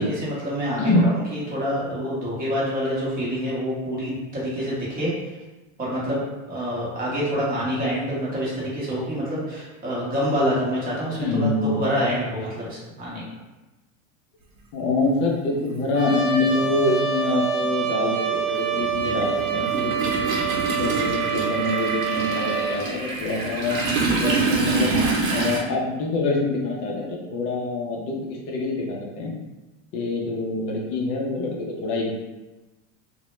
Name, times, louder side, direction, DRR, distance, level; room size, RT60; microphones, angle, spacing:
voice 1, 0.0-5.1 5.8-6.2 6.5-13.2, equal, 20° right, -6 dB, 0.7 m, -27 dB
voice 2, 0.8-1.1 11.2-11.8 14.7-20.1 20.7-24.9 25.3-28.2 28.5-29.3 29.9-32.1, left 2 dB, 35° left, -1 dB, 0.4 m, -25 dB
Toilet flush, 15.1-15.2 16.5-16.6 17.0-25.6, right 3 dB, 90° right, 0.8 m, -26 dB
Trumpet, 15.9-22.8, right 6 dB, 50° right, 0.8 m, -26 dB
2.0 x 2.0 x 3.0 m, 1.1 s
supercardioid pair, 140°, 40 cm